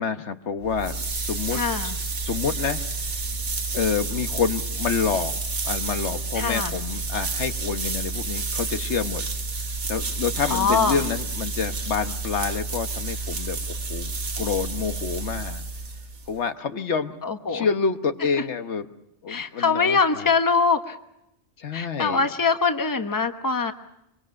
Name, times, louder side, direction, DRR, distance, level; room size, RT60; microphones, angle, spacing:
voice 1, 0.0-1.9 2.2-2.8 3.7-5.3 5.6-9.2 9.9-13.6 13.9-14.1 14.4-15.6 16.3-17.1 17.5-18.9 19.2-20.3 21.6-22.3, left 6 dB, 75° left, 8 dB, 1.4 m, -28 dB
sound 1, 0.6-16.4, right 3 dB, 85° right, 2.0 m, -30 dB
voice 2, 1.5-2.0 6.3-6.7 10.5-11.0 17.2-17.7 19.3-20.9 21.7-23.7, left 5 dB, 20° left, 7 dB, 1.1 m, -23 dB
25.0 x 23.0 x 6.4 m, 0.83 s
omnidirectional pair, 1.2 m